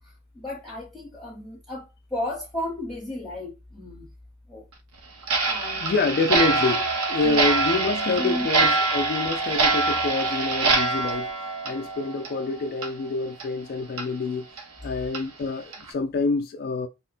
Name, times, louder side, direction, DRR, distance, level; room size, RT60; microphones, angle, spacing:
voice 1, 0.0-4.1 4.5-4.7 5.4-5.9 7.2-7.6 8.2-8.5, left 1 dB, ahead, 0.9 m, -34 dB
Clock, 5.2-12.5 12.8-12.9 13.4-13.5 14.0-14.1 14.6-14.7 15.1-15.2 15.7-15.9, right 3 dB, 85° right, 0.8 m, -24 dB
voice 2, 5.8-11.3 11.6-14.5 14.8-16.9, left 3 dB, 45° left, 0.3 m, -27 dB
3.4 x 2.1 x 4.1 m
head